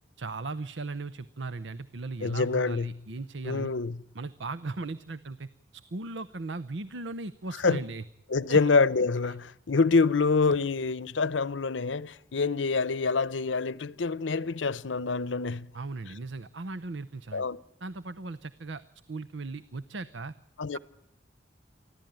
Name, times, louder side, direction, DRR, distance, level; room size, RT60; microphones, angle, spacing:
voice 1, 0.2-3.7 4.1-8.0 8.5-8.6 9.3-9.4 15.7-17.5 17.8-18.8 19.1-20.3, right 3 dB, 85° right, 0.8 m, -37 dB
voice 2, 2.2-3.0 3.4-4.0 7.6-7.8 8.3-15.7 17.3-17.6 20.6-20.8, left 4 dB, 90° left, 0.8 m, -26 dB
24.5 x 15.0 x 9.0 m
head